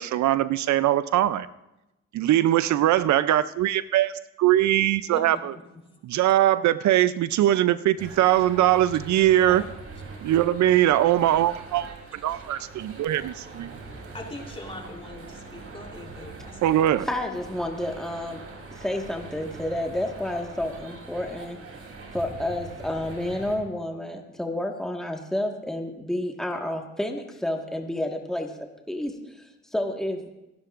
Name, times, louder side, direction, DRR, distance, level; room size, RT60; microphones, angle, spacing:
voice 1, 0.0-1.5 2.1-4.1 4.4-5.5 6.0-9.6 10.2-13.7 16.6-17.1, right 13 dB, 70° right, 15 dB, 0.6 m, -21 dB
voice 2, 5.1-5.6 9.3-9.7 14.1-16.8, left 1 dB, 20° left, 0 dB, 3.4 m, -41 dB
sound 1, 8.0-23.6, right 3 dB, 50° right, 3.3 m, -42 dB
voice 3, 17.0-18.4 18.8-21.6 22.1-28.5 28.9-30.3, left 1 dB, ahead, 2 dB, 1.6 m, -30 dB
27.0 x 11.5 x 2.5 m, 0.92 s
cardioid pair, 90°, 30 cm